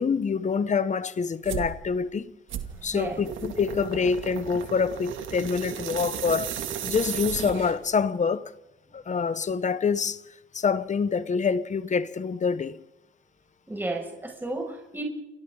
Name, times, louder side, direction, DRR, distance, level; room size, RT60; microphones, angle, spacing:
voice 1, 0.0-2.3 2.8-6.5 6.8-8.5 8.9-10.2 10.5-12.8, left 5 dB, 35° left, 1.0 m, -26 dB
sound 1, 1.4-1.7 2.5-7.9, right 8 dB, 75° right, 2.5 m, -34 dB
voice 2, 2.8-3.2 13.7-15.0, right 2 dB, 10° right, 6.6 m, -33 dB
29.0 x 25.5 x 3.9 m
cardioid pair, 90°, 20 cm